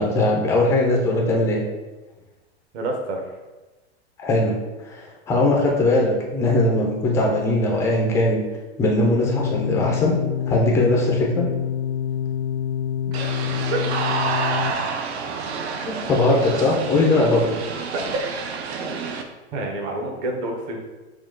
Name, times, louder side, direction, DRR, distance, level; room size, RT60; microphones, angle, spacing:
voice 1, 0.0-1.6 4.2-4.5 4.8-8.4 8.8-10.1 10.5-11.4 15.9-17.6, left 2 dB, 10° left, -2 dB, 0.3 m, -20 dB
voice 2, 2.7-3.2 13.7-13.8 17.9-18.0 19.5-20.8, right 2 dB, 30° right, 1 dB, 0.8 m, -27 dB
sound 1, 9.3-14.7, left 9 dB, 80° left, 0.5 m, -26 dB
sound 2, 13.1-19.2, right 5 dB, 65° right, 0.7 m, -29 dB
6.1 x 2.3 x 3.7 m, 1.1 s
supercardioid pair, 150°, 34 cm